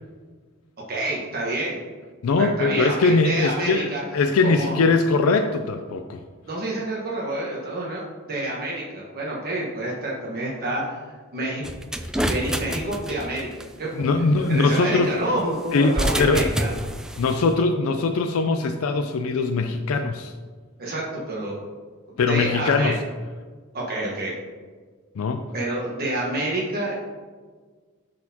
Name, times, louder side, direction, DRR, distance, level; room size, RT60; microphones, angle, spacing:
voice 1, 0.9-1.8 2.3-4.7 6.5-11.0 11.3-11.6 12.1-13.5 13.8-14.0 14.5-16.8 20.8-21.6 22.3-22.9 23.7-24.3 25.5-26.9, right 1 dB, 45° right, -4 dB, 1.2 m, -28 dB
voice 2, 2.2-6.2 14.0-15.1 15.7-16.5 17.2-20.3 22.2-23.0 25.2-25.5, left 3 dB, 75° left, 7 dB, 0.4 m, -21 dB
sound 1, 11.6-13.7 15.8-17.4, equal, 5° right, 0.3 m, -27 dB
11.0 x 4.2 x 2.8 m, 1.5 s
head